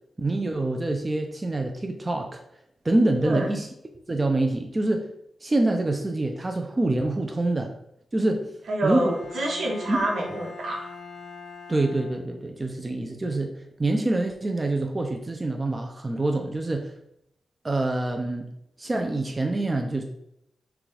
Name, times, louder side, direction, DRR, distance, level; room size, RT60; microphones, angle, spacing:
voice 1, 0.2-2.4 2.8-3.7 4.1-5.1 5.4-7.7 8.1-8.5 8.8-9.2 9.9-10.0 11.7-16.9 17.6-18.4 18.8-20.0, right 2 dB, 25° right, 3 dB, 0.5 m, -26 dB
voice 2, 8.7-10.9, right 1 dB, 85° right, -2 dB, 1.3 m, -27 dB
Bowed string instrument, 9.0-12.7, left 5 dB, 45° left, 0.6 m, -42 dB
5.9 x 2.4 x 3.3 m, 0.75 s
wide cardioid pair, 120°, 0 cm